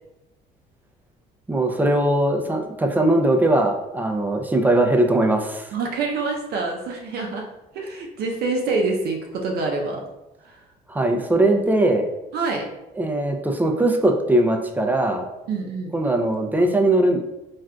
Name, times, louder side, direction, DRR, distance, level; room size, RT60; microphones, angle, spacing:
voice 1, 1.5-5.7 10.9-12.1 13.0-15.3 15.9-17.2, right 1 dB, 10° right, 3 dB, 0.4 m, -20 dB
voice 2, 5.7-7.5 7.7-10.0 10.4-10.6 12.3-12.7 15.5-15.9, right 3 dB, 70° right, 1 dB, 0.5 m, -26 dB
3.6 x 2.5 x 2.2 m, 0.95 s
cardioid pair, 110°, 17 cm